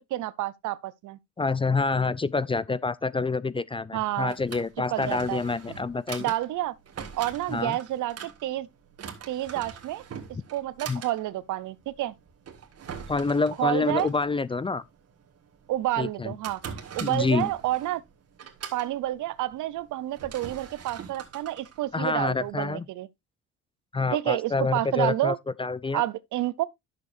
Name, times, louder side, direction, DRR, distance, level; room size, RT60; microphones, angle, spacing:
voice 1, 0.1-1.2 3.9-4.3 4.9-5.4 6.2-6.7 7.2-8.7 9.3-10.0 10.5-12.1 13.6-14.1 15.7-18.0 18.7-23.1 24.1-25.4 25.9-26.6, right 15 dB, 80° right, 0.6 m, -29 dB
voice 2, 1.4-6.3 7.5-7.8 10.9-11.0 13.1-14.8 16.0-16.3 17.0-17.5 21.9-22.9 23.9-26.0, left 4 dB, 20° left, 0.4 m, -27 dB
Drawer open or close, 3.9-22.5, right 7 dB, 55° right, 1.8 m, -43 dB
11.0 x 6.8 x 2.5 m
cardioid pair, 90°, 30 cm